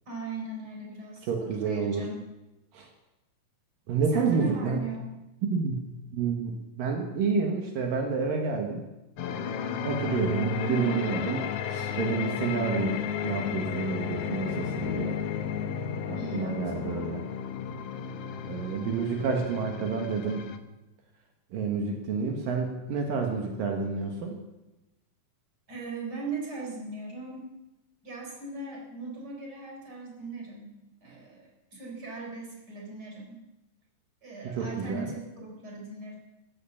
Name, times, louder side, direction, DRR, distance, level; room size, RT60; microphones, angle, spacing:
voice 1, 0.1-2.2 4.1-5.1 10.3-11.0 11.7-12.0 14.8-15.1 16.2-17.0 25.7-27.5 28.0-33.4 34.2-36.2, right 3 dB, 30° right, -1 dB, 4.4 m, -39 dB
voice 2, 1.2-2.1 2.7-2.9 3.9-4.8 5.4-5.8 6.1-8.8 9.8-11.4 12.0-15.1 16.1-17.2 18.5-20.5 21.5-24.4 34.4-35.1, right 5 dB, 75° right, 2 dB, 3.2 m, -29 dB
sound 1, 9.2-20.6, left 7 dB, 75° left, 1.4 m, -33 dB
14.5 x 12.5 x 7.2 m, 0.99 s
omnidirectional pair, 4.0 m